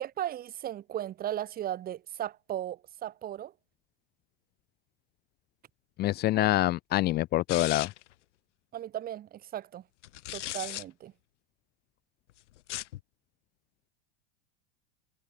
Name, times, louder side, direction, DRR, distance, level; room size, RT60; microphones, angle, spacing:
voice 1, 0.0-3.5 6.3-6.5 8.7-9.8 10.3-11.1, right 11 dB, 25° right, 7.5 m, -36 dB
voice 2, 6.0-7.9, left 16 dB, 25° left, 1.5 m, -26 dB
sound 1, 7.5-8.1 10.0-10.8 12.6-13.0, left 15 dB, 70° left, 3.2 m, -37 dB
supercardioid pair, 160°, 37 cm